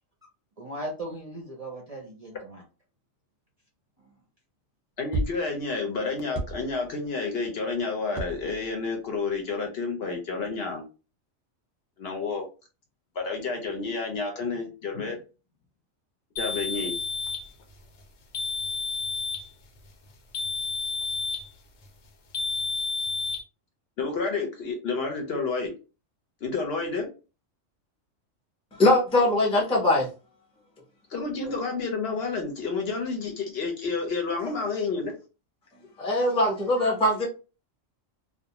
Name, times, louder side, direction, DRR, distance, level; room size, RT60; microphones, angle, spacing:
voice 1, 0.6-2.6 4.0-4.1, right 1 dB, 40° right, -1 dB, 0.5 m, -38 dB
voice 2, 5.0-10.8 12.0-12.5 13.2-15.2 16.4-16.9 24.0-25.7 26.4-27.1 31.1-35.1, left 4 dB, 60° left, 3 dB, 0.8 m, -30 dB
sound 1, 5.1-5.4 6.3-6.9 8.1-8.8 9.3-9.4, right 2 dB, 20° right, 0.8 m, -32 dB
sound 2, 16.4-17.5 18.3-19.5 20.3-21.5 22.3-23.4, left 4 dB, 85° left, 1.0 m, -30 dB
voice 3, 28.7-30.1 36.0-37.3, left 1 dB, 5° left, -1 dB, 0.4 m, -21 dB
2.5 x 2.1 x 2.8 m, 0.33 s
omnidirectional pair, 1.3 m